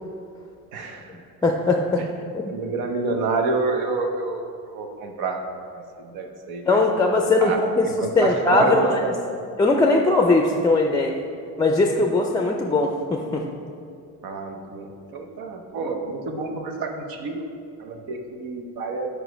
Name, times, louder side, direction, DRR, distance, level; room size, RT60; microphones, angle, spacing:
voice 1, 0.7-1.0 2.5-4.4 4.7-5.4 5.7-7.0 7.4-7.6 8.0-9.3 14.2-17.5 17.8-19.1, right 3 dB, 85° right, 4 dB, 0.8 m, -28 dB
voice 2, 1.4-2.0 6.7-9.0 9.6-11.2 11.6-13.4, left 2 dB, 10° left, 2 dB, 0.4 m, -20 dB
5.0 x 4.8 x 5.1 m, 2.5 s
cardioid pair, 90°, 36 cm